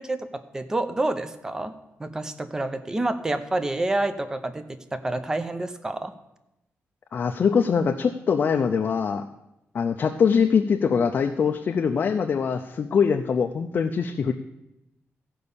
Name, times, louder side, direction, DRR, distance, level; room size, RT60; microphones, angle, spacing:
voice 1, 0.0-1.7 2.0-6.1, right 2 dB, 15° right, 10 dB, 0.6 m, -28 dB
voice 2, 7.1-9.2 9.7-14.3, left 6 dB, 45° left, 4 dB, 0.5 m, -23 dB
15.0 x 5.4 x 6.9 m, 0.89 s
wide cardioid pair, 180°, 5 cm